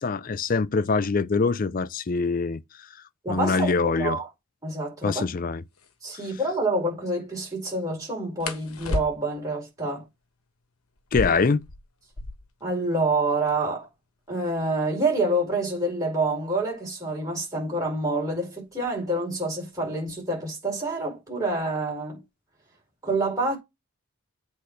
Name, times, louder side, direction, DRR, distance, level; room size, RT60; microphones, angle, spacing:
voice 1, 0.0-2.6 3.3-4.2 5.0-5.6 11.1-11.6, left 4 dB, 40° left, 0.4 m, -24 dB
voice 2, 3.2-4.3 4.6-5.2 6.0-10.0 12.6-13.9 14.3-22.2 23.0-23.6, right 2 dB, 15° right, 5.0 m, -27 dB
sound 1, 5.7-5.9 8.4-9.5 11.0-12.6 12.9-13.0 13.2-13.8 14.4-17.0 18.0-18.3 18.7-19.2 19.5-20.2, left 2 dB, 80° left, 1.3 m, -35 dB
8.3 x 4.1 x 6.5 m
head